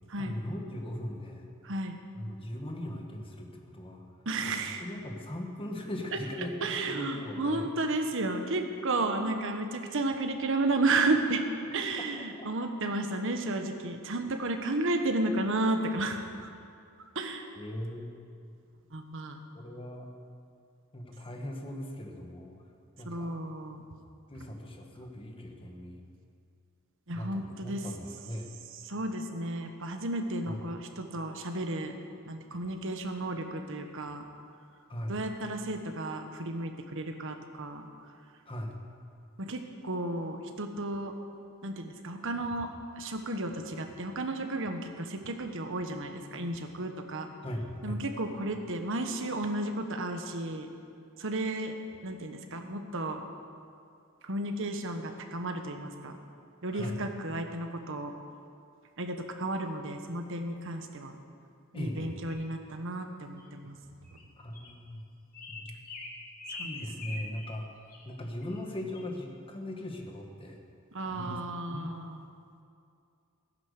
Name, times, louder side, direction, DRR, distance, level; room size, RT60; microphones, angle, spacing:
voice 1, 0.1-1.5 2.2-4.0 4.4-7.7 17.5-18.1 19.5-20.1 20.9-22.5 23.0-23.3 24.3-26.0 27.1-28.5 30.5-30.6 34.9-35.2 38.5-38.8 47.4-48.0 56.7-57.0 61.7-62.2 64.4-65.0 65.5-65.7 66.6-67.7 68.0-70.6 71.0-71.4 71.7-71.9, left 1 dB, 25° left, 2 dB, 1.6 m, -39 dB
voice 2, 1.6-2.0 4.2-4.8 6.6-11.4 11.7-16.5 17.0-17.4 18.9-19.4 23.1-23.8 27.1-27.8 28.9-32.0 32.3-34.3 35.1-37.8 39.4-41.1 41.6-47.3 47.8-50.7 51.2-51.7 52.0-53.2 54.2-56.2 56.6-58.1 59.0-61.2 61.7-63.8 66.5-67.2 70.9-72.2, right 2 dB, 65° right, 5 dB, 1.3 m, -33 dB
sound 1, 62.3-62.5 63.4-63.5 64.0-64.2 64.5-64.7 65.3-67.6 67.9-68.0 68.4-68.6 68.9-69.1, left 3 dB, 40° left, 2.2 m, -43 dB
14.5 x 10.5 x 6.6 m, 2.4 s
head